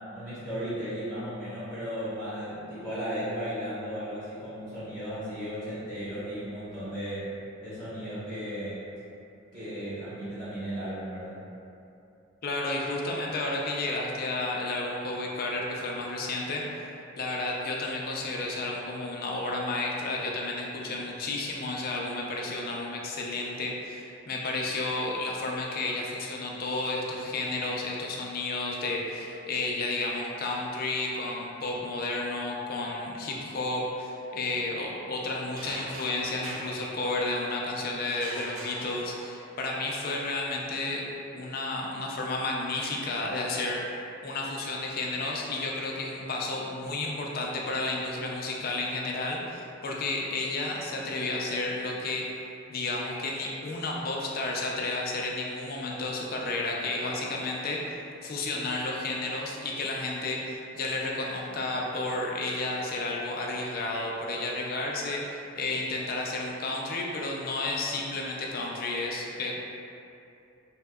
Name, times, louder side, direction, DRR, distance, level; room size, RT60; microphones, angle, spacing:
voice 1, 0.1-7.4 7.6-8.8 9.5-11.4, equal, 45° right, -13 dB, 1.4 m, -35 dB
voice 2, 12.4-16.9 17.2-41.0 41.3-43.9 44.2-52.3 52.7-69.5, left 2 dB, 45° left, -1 dB, 0.4 m, -32 dB
sound 1, 35.6-37.5 38.1-39.6, right 1 dB, 70° right, 0.4 m, -42 dB
3.5 x 2.8 x 2.3 m, 2.7 s
head